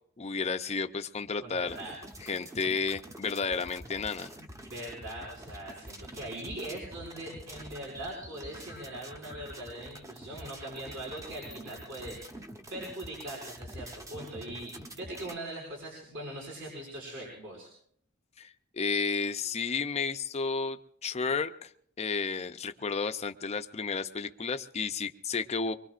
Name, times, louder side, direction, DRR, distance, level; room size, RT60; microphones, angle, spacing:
voice 1, 0.2-1.8 2.2-4.3 18.4-21.7 22.0-25.8, left 4 dB, 30° left, 8 dB, 0.6 m, -32 dB
voice 2, 1.4-2.0 4.7-12.3 12.7-17.7, right 1 dB, 70° right, -4 dB, 5.8 m, -41 dB
sound 1, 1.7-15.4, right 1 dB, 15° right, 0.9 m, -46 dB
24.5 x 22.5 x 2.5 m, 0.65 s
head